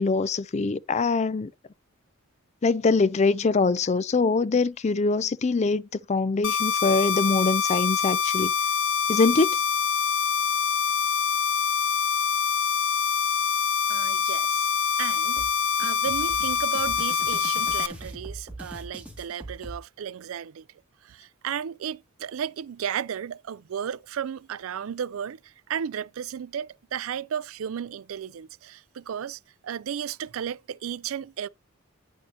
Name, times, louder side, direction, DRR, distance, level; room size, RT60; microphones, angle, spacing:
voice 1, 0.0-1.5 2.6-8.5 9.1-9.6, left 4 dB, 30° left, 0.4 m, -23 dB
sound 1, 6.4-17.9, left 6 dB, 65° left, 0.7 m, -25 dB
voice 2, 13.9-14.7 15.0-15.5 15.8-20.7 21.0-31.5, right 8 dB, 75° right, 0.4 m, -34 dB
sound 2, 15.4-19.8, right 1 dB, 5° right, 2.3 m, -41 dB
9.1 x 6.3 x 2.9 m
head